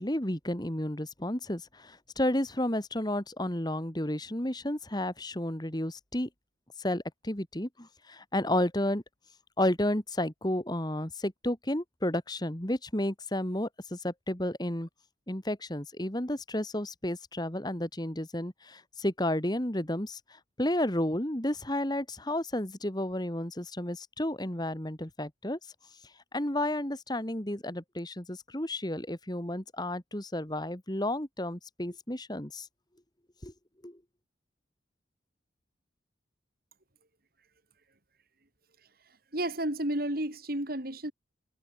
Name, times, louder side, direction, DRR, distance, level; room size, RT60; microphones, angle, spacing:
voice 1, 0.0-6.3 6.8-9.0 9.6-14.9 15.3-25.6 26.3-32.7 33.4-33.5 33.8-34.0, left 1 dB, 20° left, 2.0 m, -32 dB
voice 2, 39.3-41.1, right 1 dB, 50° right, 3.6 m, -31 dB
head